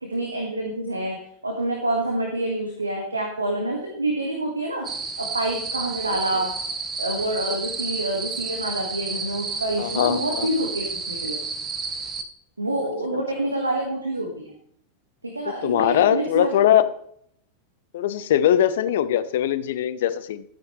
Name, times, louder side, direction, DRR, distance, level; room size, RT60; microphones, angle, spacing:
voice 1, 0.0-1.2 1.4-4.9 5.2-6.5 7.0-11.4 12.6-14.5 15.2-16.5, right 1 dB, 80° right, 1 dB, 1.7 m, -27 dB
sound 1, 4.8-12.2, right 4 dB, 20° right, 1.1 m, -31 dB
voice 2, 9.8-10.5 13.1-13.2 15.6-16.8 17.9-20.4, left 11 dB, 55° left, 14 dB, 0.7 m, -21 dB
13.0 x 9.4 x 3.2 m, 0.67 s
figure-of-eight pair, 90°, 0 cm